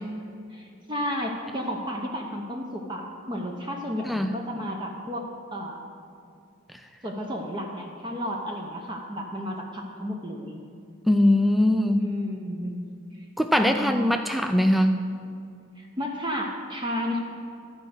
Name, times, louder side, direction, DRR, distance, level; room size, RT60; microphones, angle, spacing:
voice 1, 0.5-5.8 7.0-10.6 12.0-12.8 13.2-13.3 13.7-14.1 15.8-17.2, equal, 20° right, 0 dB, 0.7 m, -32 dB
voice 2, 11.1-12.1 13.4-15.0, left 1 dB, ahead, 6 dB, 0.3 m, -21 dB
12.5 x 5.2 x 7.7 m, 2.4 s
head